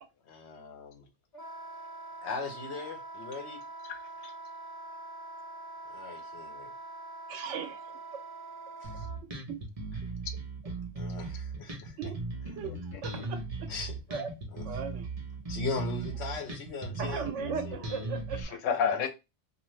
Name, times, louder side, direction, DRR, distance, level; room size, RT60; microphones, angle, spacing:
voice 1, 0.3-1.1 2.2-3.6 5.9-6.7 8.8-9.0 10.9-12.0 13.7-14.0 14.5-14.7 15.5-18.1, left 3 dB, 65° left, 1.0 m, -39 dB
Wind instrument woodwind instrument, 1.3-9.2, right 2 dB, 35° left, 1.5 m, -44 dB
voice 2, 3.8-4.3 9.0-9.1 12.6-13.3 18.3-19.1, left 7 dB, 90° left, 1.0 m, -32 dB
voice 3, 7.3-8.2 9.2-9.6 12.0-12.2 12.5-13.7 14.1-14.3 14.6-15.1 17.0-18.6, right 6 dB, 75° right, 0.9 m, -38 dB
Bass guitar, 8.8-18.4, right 3 dB, 35° right, 0.7 m, -38 dB
2.6 x 2.5 x 3.1 m
omnidirectional pair, 1.3 m